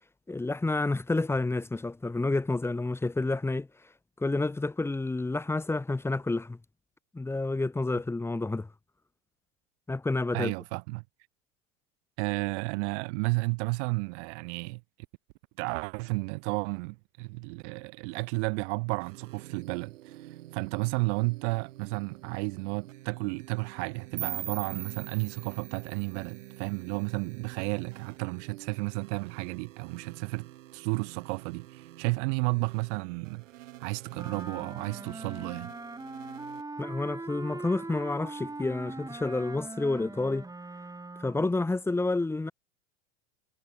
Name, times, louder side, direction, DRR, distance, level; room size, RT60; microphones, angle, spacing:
voice 1, 0.3-3.7 4.2-6.6 7.1-8.7 9.9-10.5 36.8-40.5 41.2-42.5, left 2 dB, 5° left, 0.8 m, -29 dB
voice 2, 10.3-11.0 12.2-14.8 15.6-30.5 30.7-33.4 33.8-35.7, right 30 dB, 65° right, 3.1 m, -32 dB
sound 1, 19.0-36.6, right 15 dB, 80° right, 8.0 m, -49 dB
sound 2, 24.2-27.1, right 10 dB, 35° right, 4.2 m, -40 dB
Wind instrument woodwind instrument, 34.1-41.5, right 3 dB, 10° right, 3.7 m, -41 dB
supercardioid pair, 105°, 37 cm